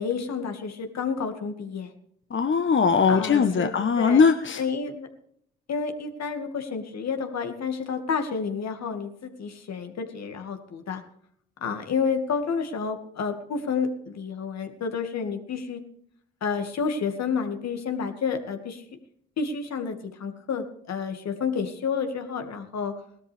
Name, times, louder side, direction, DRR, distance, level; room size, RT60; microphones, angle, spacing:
voice 1, 0.0-1.9 3.1-3.7 4.0-4.2 4.6-5.1 5.7-11.0 11.6-15.8 16.4-18.8 19.4-22.9, left 5 dB, 65° left, 6 dB, 2.1 m, -30 dB
voice 2, 2.3-4.6, left 5 dB, 40° left, 7 dB, 1.2 m, -20 dB
18.5 x 13.0 x 3.5 m, 0.69 s
hypercardioid pair, 40°, 29 cm